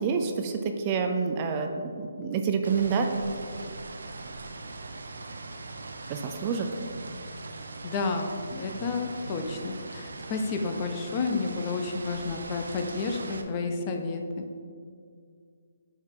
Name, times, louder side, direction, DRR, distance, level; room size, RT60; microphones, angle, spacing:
voice 1, 0.0-3.1 6.1-6.7, right 5 dB, 25° right, 4 dB, 0.5 m, -28 dB
sound 1, 2.6-13.4, right 3 dB, 80° right, 0.7 m, -40 dB
voice 2, 7.8-14.2, left 4 dB, 25° left, 4 dB, 0.6 m, -31 dB
9.3 x 4.1 x 3.7 m, 2.3 s
hypercardioid pair, 165°, 0 cm